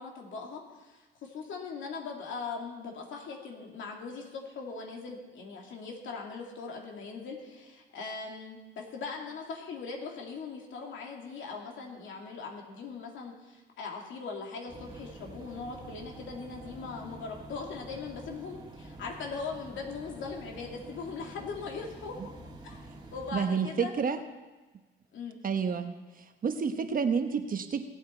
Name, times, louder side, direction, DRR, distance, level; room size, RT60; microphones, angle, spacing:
voice 1, 0.0-22.2 22.6-22.8 23.1-23.9 25.1-25.4, left 4 dB, 75° left, 0 dB, 2.5 m, -40 dB
sound 1, 14.7-23.3, right 1 dB, 20° right, 2.0 m, -47 dB
voice 2, 23.3-24.2 25.4-25.9 26.4-27.8, right 6 dB, 45° right, 8 dB, 1.0 m, -29 dB
18.0 x 8.5 x 4.4 m, 1.2 s
cardioid pair, 90°, 20 cm